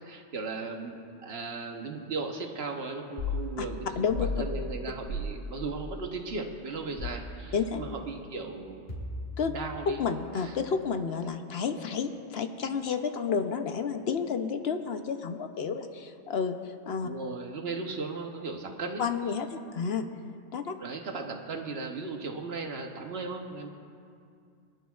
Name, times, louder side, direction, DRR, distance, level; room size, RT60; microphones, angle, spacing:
voice 1, 0.0-8.9 9.5-10.0 10.4-10.5 17.0-19.0 20.8-23.7, right 3 dB, 60° right, 4 dB, 1.2 m, -37 dB
sound 1, 3.2-3.4 4.1-4.4 5.1-5.3 7.0-7.3 8.9-9.4, left 3 dB, 45° left, 3.2 m, -33 dB
voice 2, 4.0-4.3 7.5-7.8 9.4-9.5 9.9-17.1 19.0-20.1 20.5-20.8, left 6 dB, 65° left, 7 dB, 0.9 m, -31 dB
24.0 x 11.0 x 2.3 m, 2.3 s
omnidirectional pair, 1.2 m